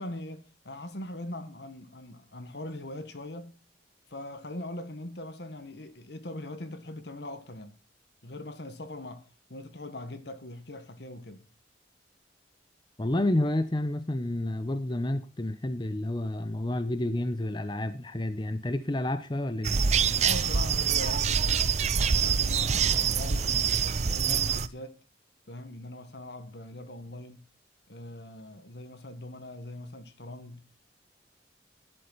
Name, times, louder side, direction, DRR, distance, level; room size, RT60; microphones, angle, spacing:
voice 1, 0.0-3.6 4.1-7.7 8.2-11.5 20.2-21.7 22.1-25.0 25.5-27.5 27.9-30.6, left 1 dB, 65° left, 1.6 m, -41 dB
voice 2, 13.0-19.8, left 1 dB, 25° left, 0.8 m, -30 dB
sound 1, 19.6-24.7, right 6 dB, 40° right, 0.6 m, -25 dB
12.5 x 11.0 x 4.1 m
head